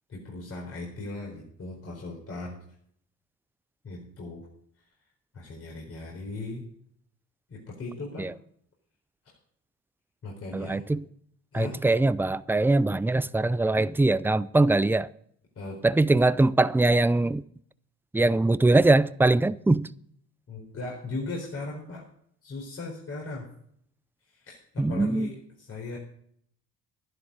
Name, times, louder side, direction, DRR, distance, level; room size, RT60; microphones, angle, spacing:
voice 1, 0.1-2.6 3.8-4.5 5.3-6.7 7.5-8.3 9.2-9.4 10.2-10.8 11.5-11.8 15.6-15.8 20.5-22.1 22.4-23.5 24.3-26.0, left 3 dB, 45° left, 4.4 m, -38 dB
voice 2, 10.5-11.0 11.5-15.1 15.8-17.4 18.1-19.9 24.8-25.3, right 2 dB, 5° right, 0.5 m, -22 dB
12.5 x 11.0 x 5.2 m
cardioid pair, 90°, 32 cm